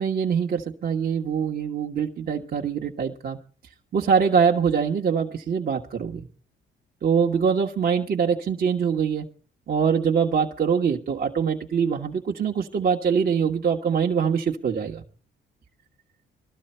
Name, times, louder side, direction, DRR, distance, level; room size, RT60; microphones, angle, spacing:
voice 1, 0.0-3.4 3.9-6.3 7.0-9.3 9.7-15.0, right 6 dB, 50° right, 1.2 m, -23 dB
19.5 x 13.0 x 4.4 m
cardioid pair, 90°, 20 cm